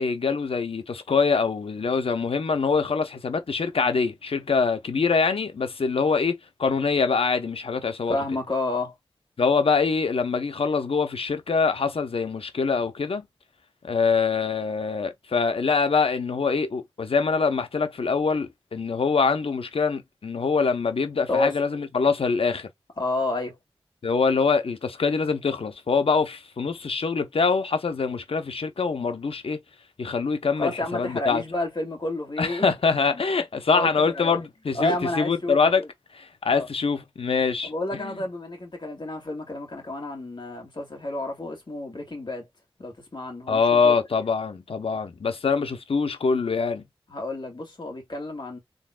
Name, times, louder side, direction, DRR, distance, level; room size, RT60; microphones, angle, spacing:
voice 1, 0.0-8.2 9.4-13.3 13.8-22.7 24.0-29.6 30.0-31.4 32.4-35.8 36.1-38.2 43.5-46.8, left 5 dB, 80° left, 0.8 m, -24 dB
voice 2, 8.1-8.9 21.3-21.5 23.0-23.5 30.6-32.7 33.1-33.2 33.7-34.4 34.7-35.9 36.5-36.7 37.6-42.5 42.8-44.0 47.1-48.6, left 2 dB, 55° left, 2.4 m, -30 dB
3.9 x 3.5 x 2.2 m
wide cardioid pair, 60°, 10 cm